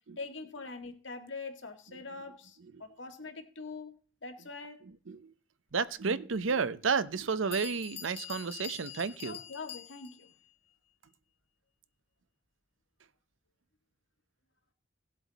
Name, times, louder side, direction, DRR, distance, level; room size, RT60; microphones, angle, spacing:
voice 1, 0.2-4.8 9.2-10.3, left 3 dB, 70° left, 1.9 m, -44 dB
voice 2, 5.7-9.4, right 5 dB, 80° right, 0.7 m, -32 dB
Bell, 6.3-6.4 7.1-7.2 7.5-10.3, left 10 dB, 30° left, 1.0 m, -45 dB
18.0 x 7.8 x 4.1 m
head